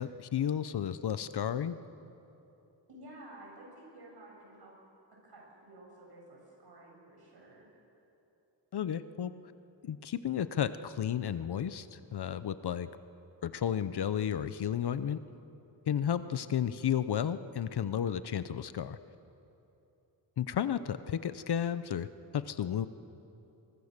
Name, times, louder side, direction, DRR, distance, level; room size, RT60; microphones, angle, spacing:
voice 1, 0.0-1.8 8.7-9.3 9.8-12.9 13.4-15.2 15.9-19.0 20.4-22.1 22.3-22.9, left 9 dB, 60° left, 13 dB, 0.8 m, -32 dB
voice 2, 2.9-4.7 5.2-7.7, right 1 dB, 55° right, -2 dB, 7.8 m, -52 dB
24.0 x 22.5 x 6.7 m, 2.9 s
wide cardioid pair, 145°, 46 cm